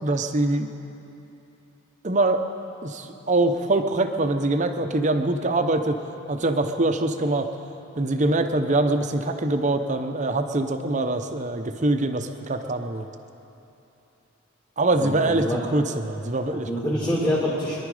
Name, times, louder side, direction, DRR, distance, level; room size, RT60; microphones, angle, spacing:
voice 1, 0.0-0.7 2.0-2.4 2.8-6.0 6.3-7.5 8.0-13.1 14.8-16.9, right 2 dB, 35° right, 7 dB, 0.8 m, -24 dB
voice 2, 14.9-15.6 16.5-17.8, equal, 15° left, -9 dB, 2.5 m, -26 dB
23.5 x 11.0 x 4.9 m, 2.9 s
head